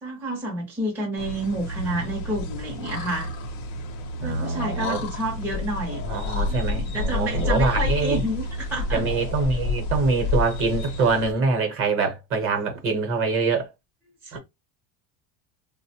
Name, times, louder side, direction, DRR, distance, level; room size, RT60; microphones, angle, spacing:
voice 1, 0.0-3.3 4.2-6.0 6.5-9.0 14.2-14.4, right 1 dB, 5° right, 0.6 m, -29 dB
sound 1, 1.2-11.3, left 3 dB, 50° left, 0.7 m, -29 dB
voice 2, 4.2-5.0 6.0-8.2 8.9-13.7 14.3-14.4, right 4 dB, 35° right, 0.9 m, -24 dB
3.7 x 2.1 x 2.8 m
cardioid pair, 170°, 38 cm